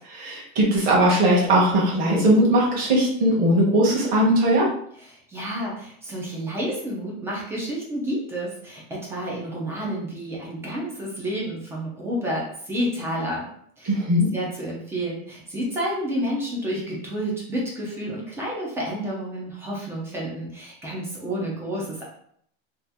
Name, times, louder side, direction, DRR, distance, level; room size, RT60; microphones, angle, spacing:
voice 1, 0.0-4.7 13.9-14.3, right 1 dB, 30° right, -3 dB, 1.0 m, -19 dB
voice 2, 5.0-13.4 13.8-14.0 14.3-22.0, equal, 10° right, -4 dB, 0.4 m, -30 dB
2.8 x 2.4 x 3.4 m, 0.65 s
cardioid pair, 175°, 29 cm